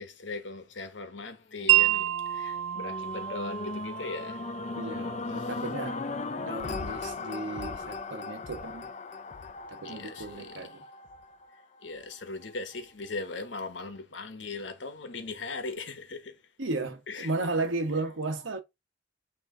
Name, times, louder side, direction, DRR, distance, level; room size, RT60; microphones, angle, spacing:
voice 1, 0.0-4.5 5.3-5.6 9.8-10.8 11.5-16.4 17.1-17.3, left 3 dB, 75° left, 1.2 m, -39 dB
sound 1, 1.6-11.8 12.4-12.5, left 3 dB, 40° left, 0.5 m, -38 dB
Wind chime, 1.7-7.8, right 15 dB, 65° right, 0.4 m, -30 dB
voice 2, 4.7-6.0 6.4-8.9 9.7-10.8 16.6-18.6, right 2 dB, 90° right, 1.2 m, -34 dB
8.6 x 3.0 x 3.8 m
head